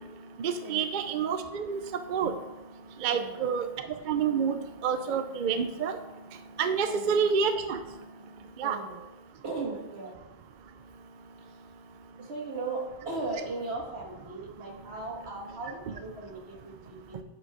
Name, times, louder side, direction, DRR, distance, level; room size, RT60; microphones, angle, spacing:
voice 1, 0.4-1.8 2.1-2.3 3.0-3.7 4.1-6.0 6.6-7.8 8.6-8.8, right 6 dB, 55° right, 9 dB, 0.7 m, -28 dB
voice 2, 3.0-3.4 6.8-7.2 8.6-9.0 9.4-10.1 11.4-11.5 12.2-17.2, right 3 dB, 85° right, 0 dB, 1.9 m, -37 dB
10.5 x 5.0 x 4.9 m, 1.1 s
omnidirectional pair, 1.1 m